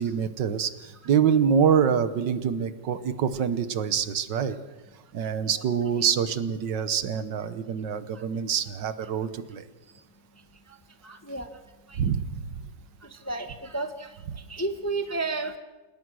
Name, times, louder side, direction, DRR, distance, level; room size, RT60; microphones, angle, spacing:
voice 1, 0.0-4.6 5.1-9.6 12.0-12.5, right 7 dB, 70° right, 13 dB, 1.7 m, -25 dB
voice 2, 11.0-11.5 13.3-14.1 14.5-15.6, right 3 dB, 10° left, 7 dB, 0.9 m, -31 dB
28.5 x 17.5 x 6.3 m, 1.2 s
omnidirectional pair, 2.0 m